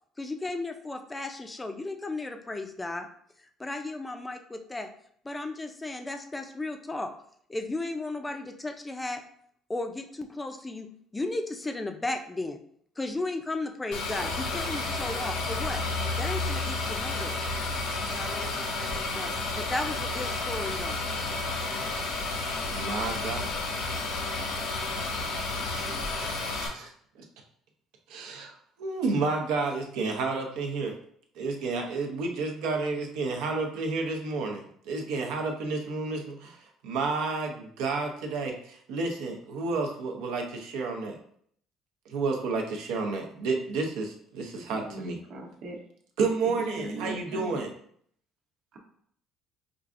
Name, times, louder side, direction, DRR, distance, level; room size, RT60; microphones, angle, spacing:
voice 1, 0.2-3.1 3.4-4.9 5.2-7.1 7.5-9.2 9.7-10.9 11.1-12.6 13.0-15.8 16.2-17.4 18.1-21.0, left 2 dB, 15° left, 5 dB, 0.4 m, -35 dB
sound 1, 13.9-26.7, left 3 dB, 80° left, 0.9 m, -31 dB
voice 2, 22.7-23.5 25.8-26.9 27.2-27.3 28.1-31.0 31.4-41.2 42.1-45.2 46.2-47.7, right 3 dB, 85° right, 2 dB, 0.6 m, -31 dB
voice 3, 44.7-45.8 46.4-47.6 48.7-48.8, right 1 dB, 60° right, 1 dB, 0.9 m, -39 dB
4.6 x 2.4 x 2.4 m, 0.63 s
cardioid pair, 115°, 0 cm